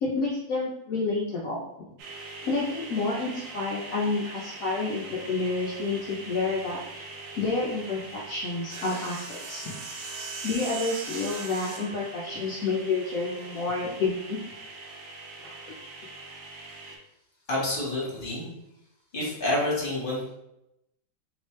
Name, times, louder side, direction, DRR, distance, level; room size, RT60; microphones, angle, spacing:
voice 1, 0.0-1.6 2.5-7.0 7.4-9.7 10.4-14.4 15.4-15.5, left 3 dB, 65° left, -5 dB, 0.8 m, -29 dB
sound 1, 2.0-17.0, right 3 dB, 65° right, 1.2 m, -41 dB
voice 2, 17.5-18.5 19.1-20.3, left 1 dB, 30° left, -5 dB, 1.3 m, -28 dB
3.2 x 3.1 x 3.1 m, 0.85 s
omnidirectional pair, 2.1 m